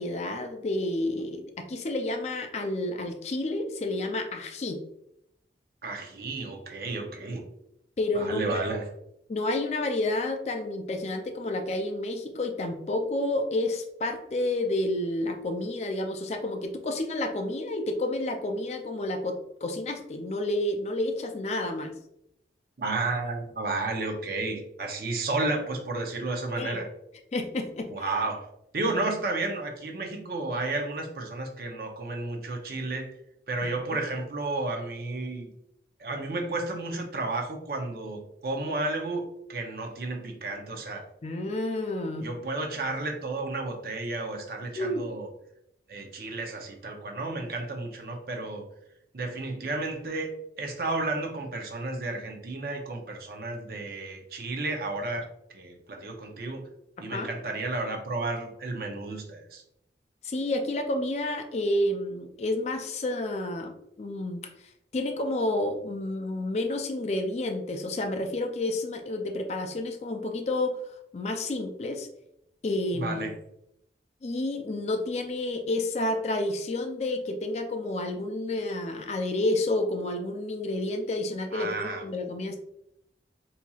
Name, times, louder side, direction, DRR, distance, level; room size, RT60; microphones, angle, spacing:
voice 1, 0.0-4.8 8.0-8.4 9.3-21.9 26.6-26.8 27.3-27.9 33.6-34.0 41.2-42.3 44.8-45.1 57.1-57.3 60.2-64.5 64.9-70.8 71.1-72.1 72.6-73.2 74.2-82.6, left 2 dB, 40° left, 5 dB, 0.4 m, -30 dB
voice 2, 5.8-7.4 8.1-8.8 21.6-21.7 22.8-26.9 27.9-28.5 28.7-33.1 33.5-35.5 36.0-41.0 42.2-45.3 45.9-48.6 49.1-50.3 50.6-55.3 55.5-56.7 57.0-59.6 72.9-73.3 81.5-82.0, right 2 dB, 55° right, 2 dB, 0.6 m, -32 dB
4.2 x 2.8 x 2.3 m, 0.77 s
head